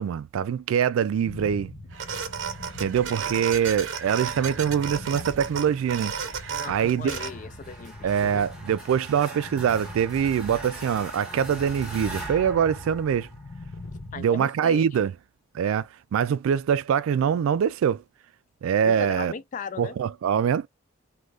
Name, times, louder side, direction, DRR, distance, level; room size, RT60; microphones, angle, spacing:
voice 1, 0.0-1.7 2.8-6.1 6.7-7.1 8.0-13.3 14.2-15.1 15.5-18.0 18.6-19.3 19.8-20.7, right 8 dB, 85° right, 0.3 m, -24 dB
sound 1, 1.2-14.2, left 1 dB, 65° left, 1.0 m, -42 dB
sound 2, 1.9-7.3, right 7 dB, 65° right, 0.7 m, -33 dB
voice 2, 6.5-8.5 14.1-14.9 18.8-20.0, left 5 dB, 40° left, 0.3 m, -37 dB
sound 3, 7.1-13.8, right 2 dB, 5° right, 0.9 m, -42 dB
3.2 x 2.2 x 2.4 m
head